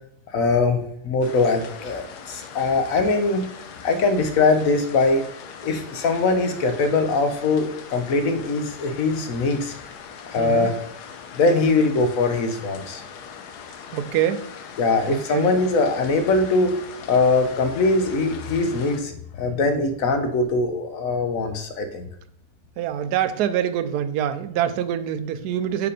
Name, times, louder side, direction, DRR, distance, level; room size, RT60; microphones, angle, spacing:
voice 1, 0.3-3.5 3.8-5.3 5.6-9.7 10.3-10.8 11.3-13.0 14.8-16.8 17.1-22.1, left 3 dB, 65° left, 7 dB, 1.1 m, -22 dB
sound 1, 1.2-19.0, left 7 dB, 90° left, 1.3 m, -41 dB
voice 2, 10.4-10.7 13.9-14.5 15.1-15.5 22.8-25.9, right 10 dB, 85° right, 11 dB, 1.1 m, -25 dB
5.1 x 4.6 x 5.0 m, 0.69 s
omnidirectional pair, 1.7 m